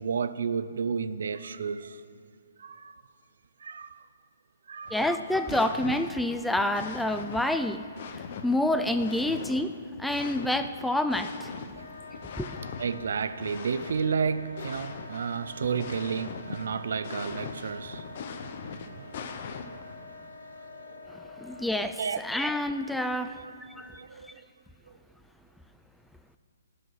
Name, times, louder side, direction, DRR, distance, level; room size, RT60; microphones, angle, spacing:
voice 1, 0.0-2.0 2.6-3.0 3.6-4.1 4.7-5.0 11.7-21.6 22.0-22.2 23.4-24.5, right 6 dB, 70° right, 14 dB, 0.4 m, -33 dB
sound 1, 4.9-20.0, left 6 dB, 50° left, 0.7 m, -42 dB
voice 2, 4.9-7.9 8.1-9.7 10.0-11.5 12.4-12.5 21.1-24.0 24.2-24.3, left 1 dB, 5° left, 8 dB, 0.3 m, -28 dB
Wind instrument woodwind instrument, 11.7-21.9, left 3 dB, 80° left, 1.0 m, -47 dB
12.0 x 6.3 x 4.6 m, 2.2 s
hypercardioid pair, 135°, 0 cm